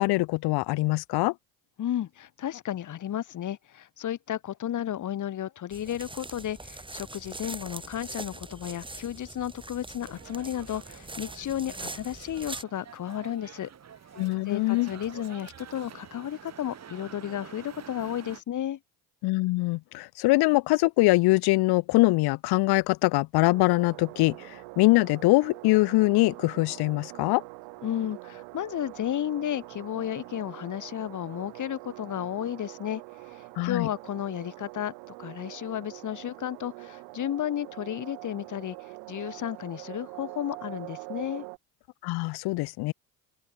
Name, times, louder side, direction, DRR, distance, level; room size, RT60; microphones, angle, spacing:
voice 1, 0.0-1.3 14.2-14.9 19.2-27.4 33.6-33.9 42.0-42.9, left 21 dB, 65° left, 1.1 m, -23 dB
voice 2, 1.8-13.7 14.5-18.8 27.8-34.9 35.2-41.4, left 11 dB, 45° left, 2.7 m, -33 dB
sound 1, 5.7-12.6, right 2 dB, 10° right, 5.7 m, -42 dB
sound 2, 10.0-18.4, right 8 dB, 40° right, 6.0 m, -48 dB
sound 3, 23.4-41.6, right 31 dB, 80° right, 7.4 m, -44 dB
open air
supercardioid pair, 95°, 41 cm